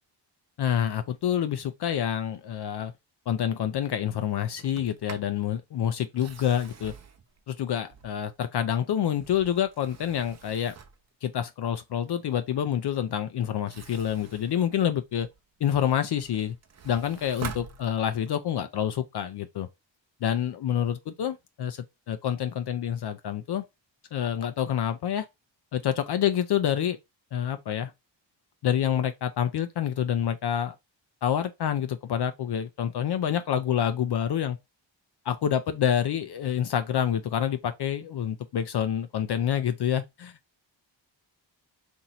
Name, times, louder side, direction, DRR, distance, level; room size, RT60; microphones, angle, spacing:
voice 1, 0.6-2.9 3.3-6.9 7.5-10.7 11.2-15.3 15.6-16.5 16.8-19.7 20.2-23.6 24.1-25.3 25.7-27.0 27.3-27.9 28.6-30.7 31.2-34.6 35.3-40.3, left 9 dB, 60° left, 0.5 m, -27 dB
Sliding door, 4.6-5.4 6.0-8.4 8.9-11.1 13.5-15.4 15.9-18.4, right 6 dB, 35° right, 0.6 m, -45 dB
2.9 x 2.7 x 4.0 m
cardioid pair, 85°, 46 cm